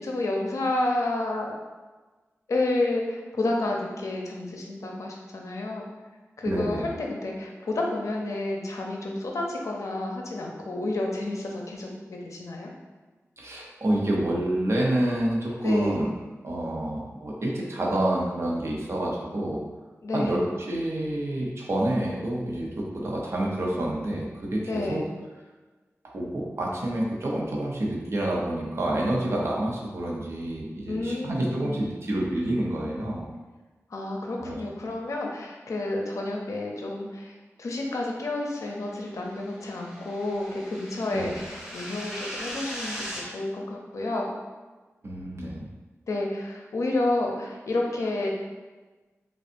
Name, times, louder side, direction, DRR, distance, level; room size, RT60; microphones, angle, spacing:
voice 1, 0.0-1.5 2.5-5.9 6.4-12.7 15.6-16.0 20.0-20.5 24.7-25.0 30.9-31.8 33.9-44.3 46.1-48.3, left 2 dB, 80° left, 0 dB, 0.6 m, -30 dB
voice 2, 6.4-6.9 13.4-16.1 16.4-19.6 20.1-25.0 26.0-33.3 34.4-34.5 41.1-41.3 45.0-45.6, right 1 dB, 55° right, -3 dB, 0.8 m, -28 dB
sound 1, 38.8-43.2, equal, 10° right, 0.9 m, -39 dB
5.2 x 2.4 x 2.6 m, 1.2 s
wide cardioid pair, 110°, 5 cm